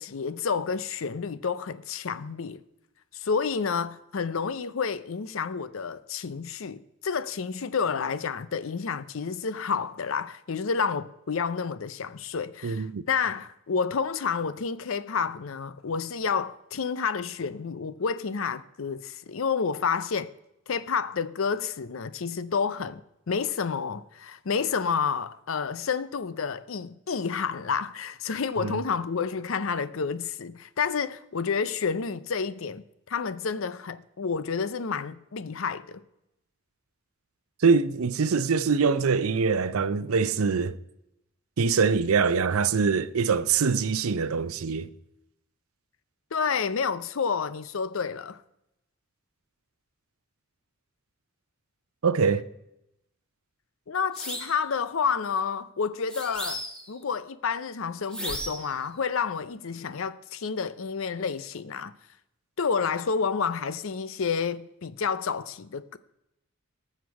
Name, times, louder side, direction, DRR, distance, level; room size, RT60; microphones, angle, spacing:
voice 1, 0.0-2.6 3.1-20.3 20.7-23.0 23.3-36.0 46.3-48.4 53.9-61.9 62.6-66.0, left 5 dB, 70° left, 0.6 m, -30 dB
voice 2, 12.6-13.0 28.6-28.8 37.6-40.8 41.6-44.9 52.0-52.4, right 5 dB, 90° right, 0.6 m, -24 dB
sound 1, 54.1-54.6 56.1-56.9 58.1-58.7, equal, 5° left, 1.7 m, -35 dB
19.0 x 6.7 x 4.6 m
head